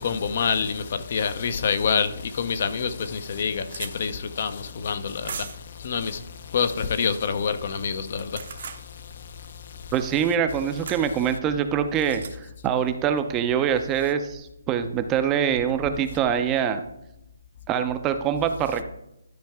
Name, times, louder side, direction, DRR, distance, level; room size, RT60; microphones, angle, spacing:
voice 1, 0.0-9.9, left 6 dB, 50° left, 0.6 m, -27 dB
sound 1, 2.3-2.4 2.9-3.0 3.2-3.9 5.2-5.7 8.1-8.8 10.9-11.1 12.0-12.3, right 6 dB, 55° right, 0.8 m, -37 dB
voice 2, 9.9-16.8 17.7-18.8, right 8 dB, 15° right, 0.5 m, -24 dB
12.0 x 4.6 x 3.4 m
hypercardioid pair, 155°, 0 cm